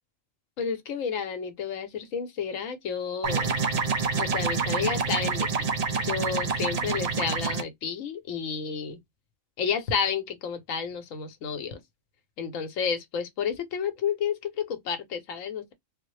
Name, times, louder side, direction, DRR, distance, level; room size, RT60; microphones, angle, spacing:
voice 1, 0.6-3.5 4.2-5.5 6.0-9.0 9.6-11.8 12.4-15.7, left 7 dB, 85° left, 1.1 m, -31 dB
sound 1, 3.2-7.6, right 5 dB, 60° right, 0.4 m, -27 dB
3.5 x 2.1 x 3.1 m
omnidirectional pair, 1.3 m